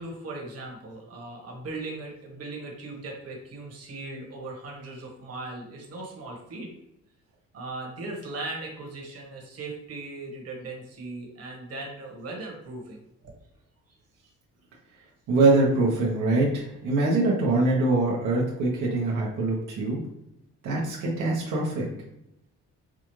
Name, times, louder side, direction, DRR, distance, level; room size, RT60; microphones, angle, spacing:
voice 1, 0.0-6.7 7.5-13.0, right 2 dB, 55° right, -1 dB, 1.3 m, -38 dB
voice 2, 15.3-20.0 20.6-21.9, right 2 dB, 85° right, -3 dB, 1.0 m, -23 dB
4.9 x 2.4 x 3.1 m, 0.83 s
cardioid pair, 90°, 30 cm